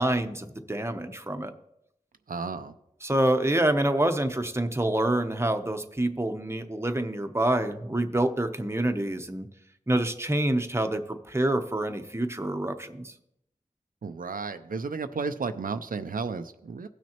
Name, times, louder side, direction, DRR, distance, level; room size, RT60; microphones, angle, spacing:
voice 1, 0.0-1.5 3.0-9.5 9.9-13.1, right 1 dB, 20° right, 7 dB, 0.8 m, -27 dB
voice 2, 2.3-2.7 14.0-16.9, right 4 dB, 85° right, 9 dB, 0.5 m, -33 dB
17.0 x 6.1 x 2.9 m, 0.79 s
wide cardioid pair, 45°, 14 cm